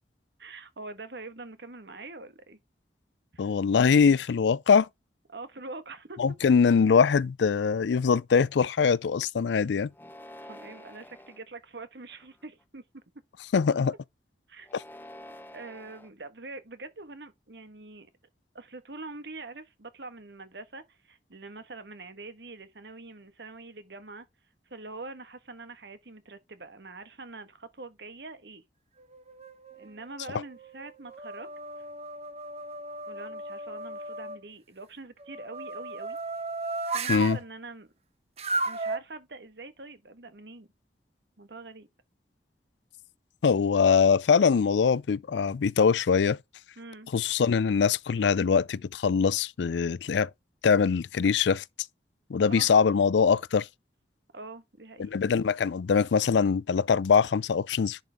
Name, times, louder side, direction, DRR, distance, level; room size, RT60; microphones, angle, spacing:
voice 1, 0.4-2.6 3.3-3.5 5.3-6.2 10.4-13.0 14.5-14.7 15.5-18.1 18.5-24.3 24.7-28.6 29.7-31.5 33.1-36.2 36.9-37.9 38.6-40.7 41.4-41.9 46.8-47.1 52.5-53.0 54.3-55.1, right 3 dB, 75° right, 1.4 m, -44 dB
voice 2, 3.4-4.9 6.2-9.9 13.5-13.9 14.7-14.8 37.1-37.4 43.4-46.4 47.1-50.3 50.6-51.6 52.3-53.7 55.0-58.0, left 6 dB, 85° left, 0.4 m, -23 dB
sound 1, 9.9-11.4 12.1-12.6 14.6-16.1, left 1 dB, 10° left, 0.7 m, -48 dB
sound 2, 29.0-29.9 30.4-34.4 35.2-37.4 38.4-39.0, right 3 dB, 35° right, 0.9 m, -35 dB
10.5 x 5.2 x 3.5 m
head